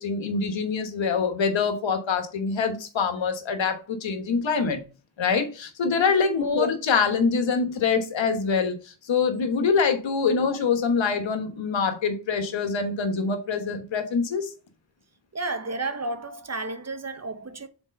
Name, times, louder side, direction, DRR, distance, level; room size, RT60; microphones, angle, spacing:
voice 1, 0.0-4.9 5.2-14.5, left 5 dB, 85° left, 1.3 m, -25 dB
voice 2, 15.3-17.7, right 2 dB, 35° right, 1.1 m, -32 dB
5.2 x 4.4 x 5.2 m
cardioid pair, 50°, 44 cm